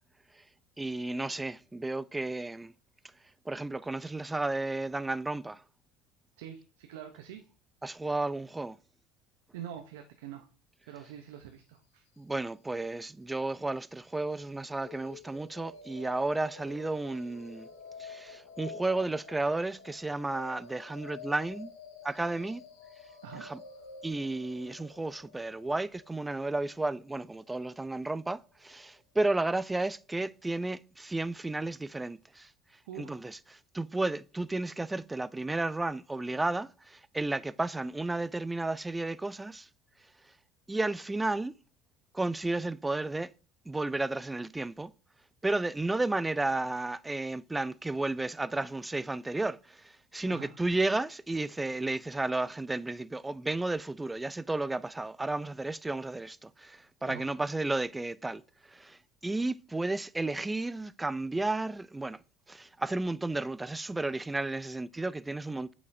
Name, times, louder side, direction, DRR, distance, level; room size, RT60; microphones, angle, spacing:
voice 1, 0.8-2.7 3.5-5.6 7.8-8.8 12.2-17.7 18.0-21.7 22.0-22.6 23.3-23.6 24.0-32.5 33.0-39.7 40.2-40.3 40.7-41.6 42.1-43.3 43.7-44.9 45.4-62.2 62.5-65.7, right 2 dB, 15° right, 0.3 m, -33 dB
voice 2, 6.4-7.4 9.5-10.5 10.9-12.0 23.2-23.5 32.9-33.2 50.3-50.5 57.1-57.3, right 10 dB, 80° right, 0.6 m, -45 dB
sound 1, 14.8-28.8, left 4 dB, 85° left, 1.3 m, -50 dB
8.2 x 5.0 x 2.6 m
hypercardioid pair, 80°, 0 cm